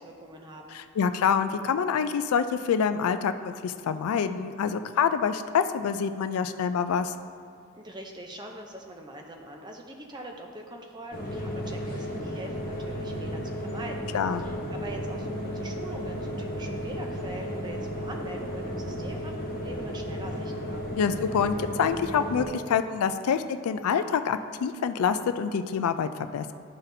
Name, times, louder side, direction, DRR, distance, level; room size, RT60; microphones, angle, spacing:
voice 1, 0.0-0.8 7.7-14.1 14.4-20.9, right 1 dB, 20° right, 2 dB, 0.6 m, -43 dB
voice 2, 0.7-7.1 14.1-14.4 21.0-26.5, left 7 dB, 85° left, 10 dB, 0.3 m, -26 dB
sound 1, 11.1-22.4, equal, 40° left, 1.1 m, -34 dB
12.0 x 4.1 x 2.7 m, 2.2 s
head